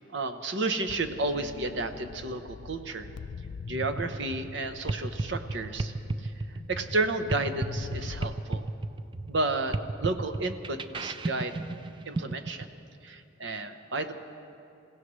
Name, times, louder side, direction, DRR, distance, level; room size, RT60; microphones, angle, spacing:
voice 1, 0.1-3.1 3.7-5.9 6.2-6.3 6.7-8.7 9.3-11.5 12.1-12.7 13.0-14.1, right 2 dB, 65° right, 8 dB, 0.9 m, -32 dB
sound 1, 0.9-8.3, left 5 dB, 60° left, 0.3 m, -44 dB
Keyboard (musical), 1.3-3.3, left 2 dB, 5° right, 2.4 m, -53 dB
sound 2, 3.7-12.6, right 2 dB, 25° right, 0.4 m, -34 dB
27.5 x 16.5 x 3.2 m, 2.6 s
head